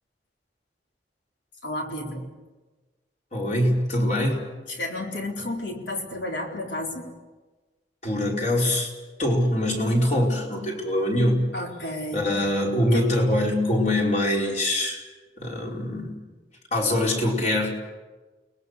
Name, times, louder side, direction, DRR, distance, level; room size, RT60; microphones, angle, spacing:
voice 1, 1.6-2.3 4.7-7.1 11.5-12.4 12.9-13.1, left 1 dB, 90° left, 1 dB, 4.2 m, -32 dB
voice 2, 3.3-4.4 8.0-8.9 9.2-11.5 12.1-15.0 15.4-16.2 16.7-17.8, left 1 dB, 40° left, -1 dB, 5.0 m, -23 dB
30.0 x 20.0 x 6.8 m, 1.3 s
head